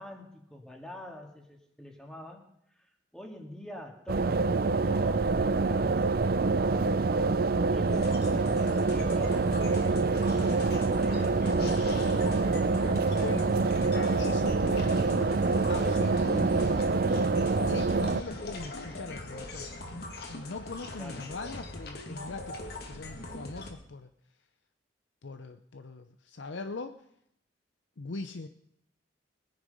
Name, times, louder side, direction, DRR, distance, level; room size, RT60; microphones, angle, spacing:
voice 1, 0.0-8.0 8.4-13.7 21.0-21.3, left 1 dB, 5° left, 2 dB, 2.0 m, -47 dB
sound 1, 4.1-18.2, right 3 dB, 50° right, 0.5 m, -26 dB
sound 2, 7.8-23.7, left 2 dB, 55° left, 2.2 m, -41 dB
voice 2, 13.2-13.5 14.2-15.4 15.7-16.8 17.6-19.7 20.3-22.6 22.9-24.1 25.2-27.0 28.0-28.5, left 3 dB, 75° left, 8 dB, 0.7 m, -41 dB
21.0 x 10.5 x 5.4 m, 0.76 s
head